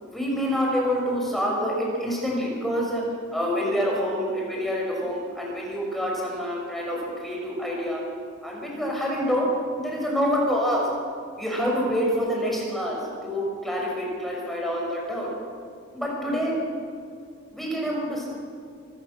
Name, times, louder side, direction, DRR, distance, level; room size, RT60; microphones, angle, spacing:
voice 1, 0.0-3.0 3.3-8.0 8.4-9.5 9.8-10.8 11.4-15.3 15.9-16.5 17.5-18.3, equal, ahead, -3 dB, 5.7 m, -27 dB
25.5 x 14.5 x 7.6 m, 2.2 s
head